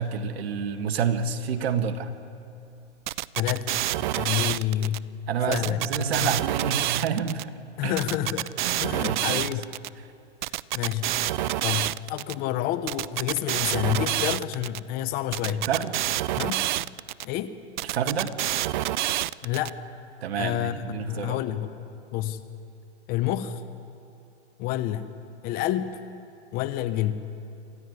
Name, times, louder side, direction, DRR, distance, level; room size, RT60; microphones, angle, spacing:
voice 1, 0.0-2.1 4.4-4.6 5.3-7.5 7.8-8.0 8.6-9.5 15.5-16.0 17.8-18.3 20.2-21.4, right 7 dB, 60° right, 7 dB, 1.9 m, -29 dB
sound 1, 3.1-5.0 5.5-7.4 8.0-9.9 10.4-12.3 12.9-14.8 15.3-17.2 17.8-19.7, right 14 dB, 45° right, 0.4 m, -27 dB
voice 2, 3.4-3.7 4.1-5.0 5.5-5.8 6.2-6.3 7.8-8.5 8.8-9.6 10.7-11.1 11.6-15.7 16.4-16.7 17.2-17.5 19.4-19.8 20.4-20.8 21.1-21.7 22.1-22.4 23.1-23.6 24.6-25.2 25.4-26.0 26.5-27.2, left 13 dB, 25° left, 12 dB, 0.9 m, -28 dB
sound 2, 5.4-8.4, left 2 dB, 10° left, 2.9 m, -46 dB
26.0 x 14.5 x 9.7 m, 2.6 s
hypercardioid pair, 140°, 35 cm